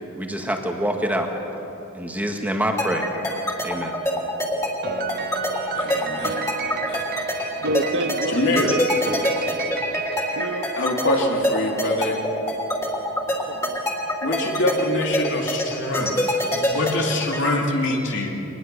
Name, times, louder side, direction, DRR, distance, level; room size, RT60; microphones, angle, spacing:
voice 1, 0.2-1.3 1.9-3.1 3.6-3.9, equal, 10° right, 2 dB, 1.9 m, -25 dB
sound 1, 2.8-17.5, left 1 dB, 15° left, 3.5 m, -25 dB
Piano, 4.8-11.3, right 6 dB, 45° right, 0.7 m, -32 dB
voice 2, 5.7-7.0 8.3-8.8 10.8-12.2 14.2-18.3, left 1 dB, 60° left, 0 dB, 2.8 m, -25 dB
voice 3, 7.6-8.8 10.3-10.7 13.5-13.8 16.7-16.9 17.7-18.2, right 1 dB, 65° right, 6 dB, 1.4 m, -29 dB
24.5 x 20.0 x 6.9 m, 2.9 s
head